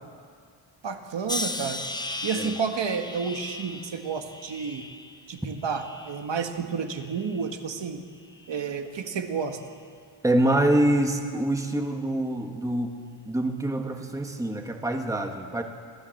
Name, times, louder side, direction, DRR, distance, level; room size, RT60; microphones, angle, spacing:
voice 1, 0.8-1.8 2.2-4.9 5.3-8.0 8.5-9.6, right 6 dB, 70° right, 5 dB, 1.6 m, -30 dB
sound 1, 1.3-6.4 6.9-7.6 8.3-8.6, left 2 dB, 10° left, 0.5 m, -37 dB
voice 2, 10.2-13.0 13.2-15.6, right 1 dB, 5° right, 4 dB, 1.3 m, -25 dB
24.0 x 14.5 x 7.6 m, 2.1 s
wide cardioid pair, 165°, 46 cm